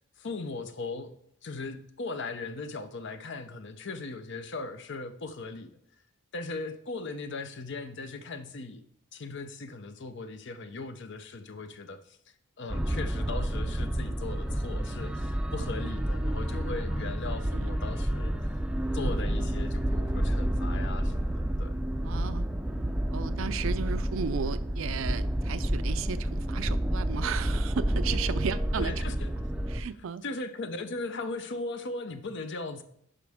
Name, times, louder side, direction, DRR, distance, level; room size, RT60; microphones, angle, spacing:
voice 1, 0.2-1.1 1.4-5.7 6.3-8.8 9.1-12.2 12.6-18.5 18.9-21.8 28.8-29.3 30.2-32.8, left 3 dB, 60° left, 10 dB, 0.7 m, -38 dB
sound 1, 12.7-29.8, right 1 dB, 5° right, 0.4 m, -30 dB
voice 2, 22.0-22.4 23.1-28.9 29.7-30.2, right 6 dB, 70° right, 14 dB, 0.4 m, -34 dB
11.0 x 5.1 x 3.5 m, 0.71 s
head